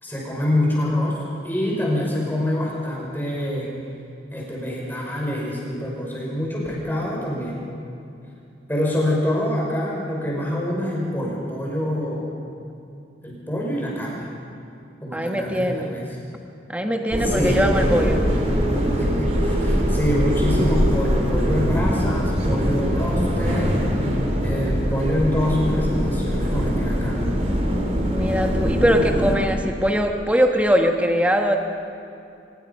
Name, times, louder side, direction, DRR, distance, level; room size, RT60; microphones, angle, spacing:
voice 1, 0.0-1.2 1.4-3.7 4.3-7.6 8.7-12.3 13.2-14.3 15.0-16.0 17.2-17.6 19.0-27.2, left 1 dB, 10° left, -4 dB, 5.6 m, -26 dB
voice 2, 15.1-16.0 16.7-18.2 28.1-31.6, equal, 10° right, 3 dB, 1.4 m, -21 dB
sound 1, 17.1-29.4, equal, 35° right, 3.5 m, -22 dB
24.0 x 20.5 x 5.5 m, 2.6 s
head